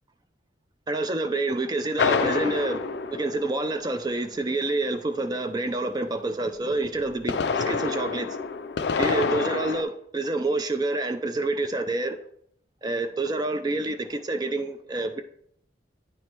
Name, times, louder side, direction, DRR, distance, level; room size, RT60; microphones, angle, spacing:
voice 1, 0.9-8.4 9.0-12.2 12.8-15.2, right 2 dB, 20° right, 0.4 m, -28 dB
sound 1, 2.0-4.1 7.0-9.8, left 5 dB, 65° left, 0.4 m, -27 dB
9.1 x 3.1 x 4.5 m
head